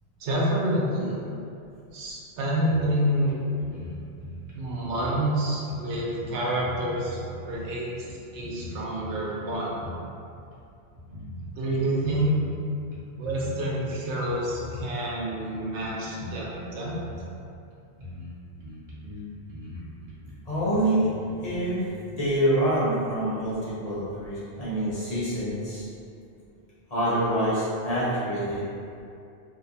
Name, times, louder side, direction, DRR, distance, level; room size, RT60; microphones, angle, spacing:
voice 1, 0.2-1.2 1.9-3.6 4.5-7.2 7.5-9.8 11.5-12.3 13.2-16.9, right 1 dB, 85° right, -4 dB, 0.9 m, -28 dB
sound 1, 2.7-3.0 3.3-3.4 3.6-5.2 5.7-7.8 8.1-10.0 10.3-10.5 10.9-12.6 12.9-13.5 13.8-14.9 15.3-17.3 17.7-17.8 18.0-18.3 18.6-21.9, left 1 dB, 55° right, 0.8 m, -41 dB
voice 2, 20.5-21.1 21.4-25.8 26.9-28.6, right 1 dB, 40° left, -11 dB, 0.7 m, -26 dB
2.6 x 2.1 x 2.6 m, 2.6 s
omnidirectional pair, 1.1 m